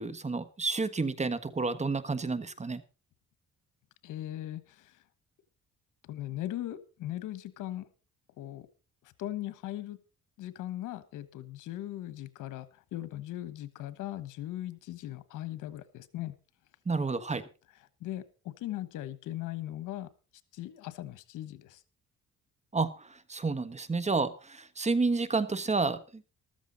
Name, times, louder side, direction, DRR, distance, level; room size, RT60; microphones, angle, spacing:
voice 1, 0.0-2.8 16.8-17.4 22.7-26.2, right 3 dB, 20° right, 14 dB, 1.4 m, -30 dB
voice 2, 4.0-5.0 6.1-7.9 8.4-8.7 9.2-10.0 10.4-12.7 12.9-16.3 18.0-20.1 20.5-21.8, left 14 dB, 90° left, 15 dB, 1.3 m, -39 dB
14.0 x 13.5 x 4.0 m, 0.32 s
cardioid pair, 90°, 30 cm